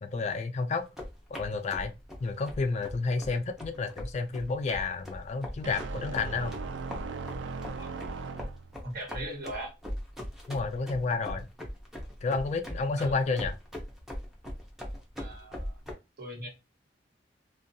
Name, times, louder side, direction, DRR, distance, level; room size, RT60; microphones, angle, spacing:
voice 1, 0.0-0.9 1.3-1.9 2.2-6.5 10.5-11.5 12.2-13.5, left 4 dB, 40° left, 0.3 m, -30 dB
sound 1, 0.8-15.9, equal, ahead, 0.7 m, -40 dB
sound 2, 5.6-8.8, right 4 dB, 85° right, 0.4 m, -38 dB
voice 2, 8.8-9.7 13.0-13.1 15.2-15.8 16.2-16.5, right 1 dB, 60° right, 1.1 m, -39 dB
2.6 x 2.2 x 2.6 m
head